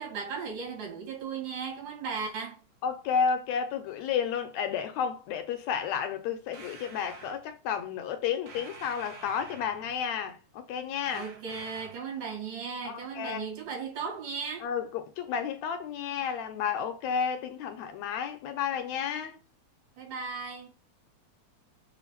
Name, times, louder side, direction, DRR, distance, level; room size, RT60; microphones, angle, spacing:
voice 1, 0.0-2.6 11.1-14.7 20.0-20.7, right 5 dB, 85° right, 3.9 m, -36 dB
voice 2, 2.8-11.3 12.9-13.5 14.6-19.4, left 7 dB, 80° left, 1.7 m, -32 dB
sound 1, 6.5-7.4 8.5-10.0 11.0-12.1, right 4 dB, 65° right, 1.1 m, -48 dB
6.9 x 2.5 x 5.6 m
omnidirectional pair, 3.5 m